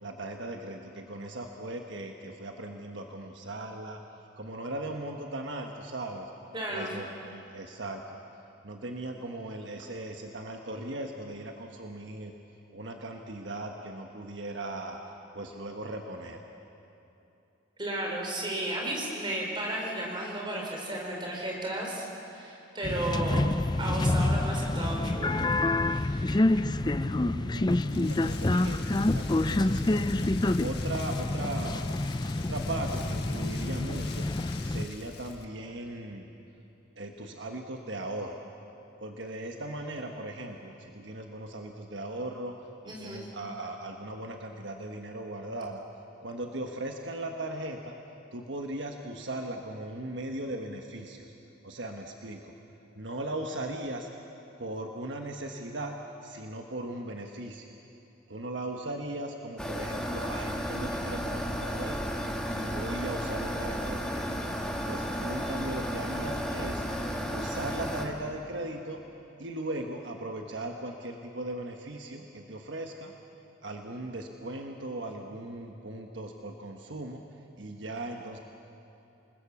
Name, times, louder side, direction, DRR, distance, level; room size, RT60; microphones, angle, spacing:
voice 1, 0.0-4.0 4.4-6.3 6.7-8.2 8.6-12.3 12.7-15.0 15.3-16.4 27.0-31.9 32.2-34.3 34.6-36.3 37.0-38.4 39.0-42.5 42.8-45.8 46.2-48.0 48.3-51.3 51.6-52.5 52.9-54.1 54.6-55.9 56.2-57.7 58.3-64.3 64.9-69.0 69.4-73.1 73.6-77.2 77.6-78.4, right 1 dB, 65° right, 3 dB, 1.3 m, -38 dB
voice 2, 6.5-6.9 17.8-23.4 23.8-25.4 25.8-26.5 42.9-43.2, right 1 dB, 25° right, -1 dB, 4.4 m, -34 dB
sound 1, 22.8-34.8, left 2 dB, 20° left, 0.4 m, -27 dB
Rain, 27.7-35.4, left 5 dB, 55° left, 1.5 m, -46 dB
sound 2, 59.6-68.1, equal, 5° left, 1.8 m, -33 dB
28.5 x 20.5 x 7.1 m, 2.9 s
head